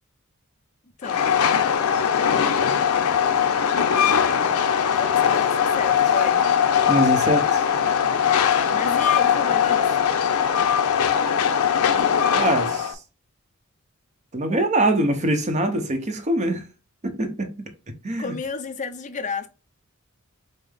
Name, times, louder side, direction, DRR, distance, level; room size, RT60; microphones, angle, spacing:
Train, 1.0-12.9, left 8 dB, 85° left, 0.5 m, -20 dB
voice 1, 1.0-1.3 4.9-6.4 8.7-10.0 18.2-19.5, left 4 dB, 35° left, 0.5 m, -32 dB
voice 2, 6.9-7.6 12.3-13.0 14.3-16.7 17.0-17.7 18.0-18.3, right 1 dB, 35° right, 0.7 m, -23 dB
5.5 x 2.0 x 3.3 m
head